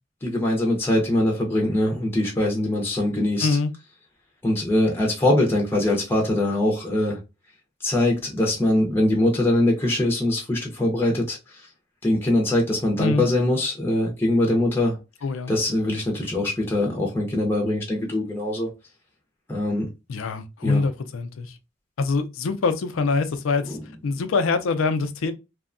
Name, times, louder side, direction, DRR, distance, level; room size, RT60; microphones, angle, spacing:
voice 1, 0.2-3.6 4.4-7.2 7.8-11.4 12.0-15.0 15.5-18.7 19.5-19.9 20.6-20.8 23.7-23.8, left 1 dB, 10° left, 0.5 m, -22 dB
voice 2, 3.4-3.7 13.0-13.3 15.2-15.6 20.1-21.6 22.0-23.8 24.0-25.3, left 4 dB, 85° left, 0.4 m, -24 dB
2.7 x 2.2 x 2.5 m
head